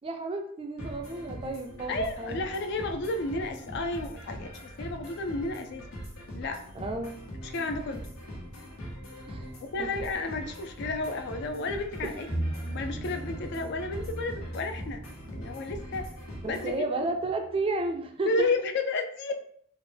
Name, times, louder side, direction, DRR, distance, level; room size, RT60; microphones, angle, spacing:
voice 1, 0.0-2.5 6.7-7.2 9.3-9.5 12.0-12.1 16.4-18.5, right 2 dB, 25° right, 5 dB, 0.3 m, -32 dB
sound 1, 0.8-16.8, equal, 80° left, 1.2 m, -42 dB
voice 2, 1.9-5.8 6.3-6.6 7.4-8.0 9.6-12.3 12.7-15.0 15.3-16.1 16.5-16.9 18.2-19.3, left 2 dB, 55° left, 6 dB, 0.3 m, -32 dB
sound 2, 12.3-18.1 18.3-18.4, right 1 dB, 15° left, 0.6 m, -39 dB
3.8 x 2.1 x 3.2 m, 0.63 s
head